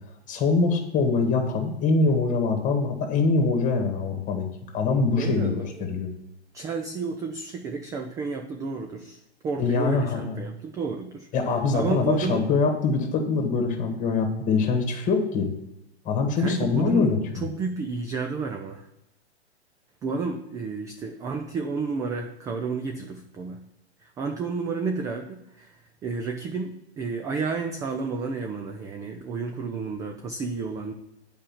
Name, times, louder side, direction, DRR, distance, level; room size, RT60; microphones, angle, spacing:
voice 1, 0.3-4.5 4.7-5.6 5.9-6.1 9.6-10.3 11.3-15.5 16.1-17.4, left 4 dB, 25° left, 5 dB, 1.9 m, -23 dB
voice 2, 5.2-5.9 6.5-11.3 11.7-12.5 16.4-18.9 20.0-23.6 24.0-30.9, right 4 dB, 10° right, 4 dB, 0.3 m, -31 dB
8.8 x 5.1 x 7.1 m, 0.88 s
figure-of-eight pair, 110°, 33 cm